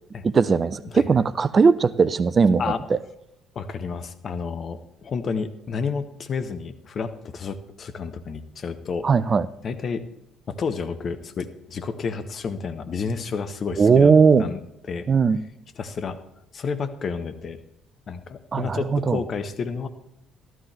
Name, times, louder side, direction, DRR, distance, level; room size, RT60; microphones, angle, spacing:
voice 1, 0.2-2.6 2.9-3.0 9.0-9.5 13.8-14.4 15.1-15.5 18.5-19.2, right 5 dB, 35° right, 18 dB, 0.4 m, -18 dB
voice 2, 3.5-9.1 9.6-10.1 10.5-14.6 14.9-15.1 15.7-16.2 16.5-17.6 18.1-19.9, left 5 dB, 40° left, 10 dB, 0.9 m, -30 dB
13.5 x 12.5 x 3.4 m, 0.82 s
figure-of-eight pair, 50°, 0 cm